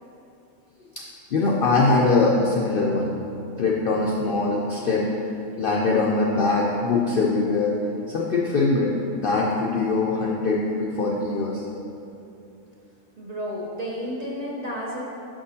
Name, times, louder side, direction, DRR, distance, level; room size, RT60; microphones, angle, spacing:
voice 1, 1.3-3.2 3.6-5.1 5.6-7.7 8.1-11.6, left 3 dB, 65° left, -3 dB, 0.5 m, -22 dB
voice 2, 13.2-15.0, equal, 40° right, -5 dB, 0.6 m, -31 dB
6.1 x 6.0 x 2.7 m, 2.8 s
omnidirectional pair, 1.4 m